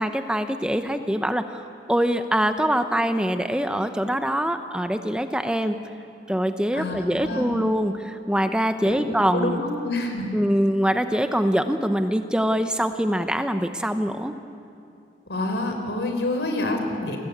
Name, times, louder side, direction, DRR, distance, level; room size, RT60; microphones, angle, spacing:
voice 1, 0.0-5.7 6.3-9.6 10.3-14.3, equal, 5° right, 8 dB, 0.8 m, -24 dB
voice 2, 6.7-7.6 8.8-10.3 15.3-17.2, left 2 dB, 80° left, 4 dB, 4.6 m, -28 dB
29.5 x 21.0 x 8.7 m, 2.6 s
head